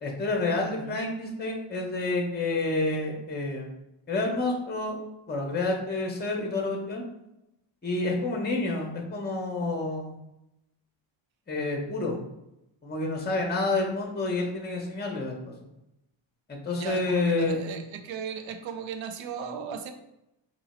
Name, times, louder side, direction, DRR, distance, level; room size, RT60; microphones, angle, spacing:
voice 1, 0.0-3.7 4.1-5.0 5.3-7.0 7.8-10.1 11.5-12.2 12.8-15.5 16.5-17.6, left 2 dB, 20° left, 1 dB, 0.8 m, -29 dB
voice 2, 0.7-1.0 16.7-19.9, right 6 dB, 65° right, 6 dB, 0.6 m, -36 dB
3.0 x 2.7 x 4.1 m, 0.87 s
cardioid pair, 100°, 50 cm